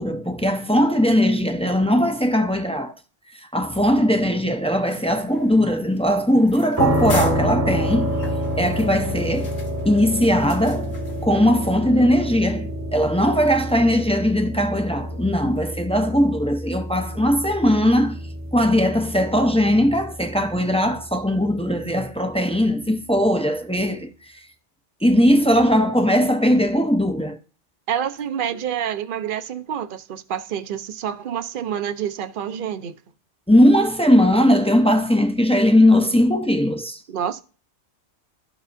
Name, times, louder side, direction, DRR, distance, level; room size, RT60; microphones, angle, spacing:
voice 1, 0.0-2.9 3.4-8.2 8.5-9.5 9.8-11.0 11.2-18.2 18.5-24.1 25.0-27.4 33.5-37.0, equal, 10° left, 0.4 m, -19 dB
sound 1, 4.9-11.3, left 4 dB, 65° left, 1.4 m, -41 dB
sound 2, 6.8-21.6, equal, 15° right, 0.9 m, -28 dB
voice 2, 27.9-33.0 37.1-37.4, right 9 dB, 55° right, 0.7 m, -28 dB
13.0 x 4.9 x 2.6 m
omnidirectional pair, 1.2 m